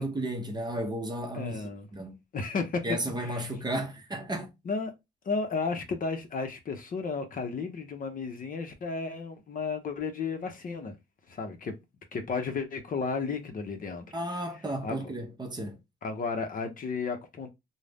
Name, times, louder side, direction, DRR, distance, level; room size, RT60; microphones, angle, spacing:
voice 1, 0.0-1.6 1.9-2.2 2.8-4.5 14.1-15.8, right 1 dB, 20° right, 0.7 m, -33 dB
voice 2, 1.3-1.9 2.3-2.9 3.2-3.5 4.6-4.9 5.2-11.0 11.3-11.7 12.1-14.1 14.8-15.1 16.0-17.5, left 4 dB, 45° left, 0.7 m, -33 dB
2.5 x 2.1 x 3.3 m
cardioid pair, 90°, 20 cm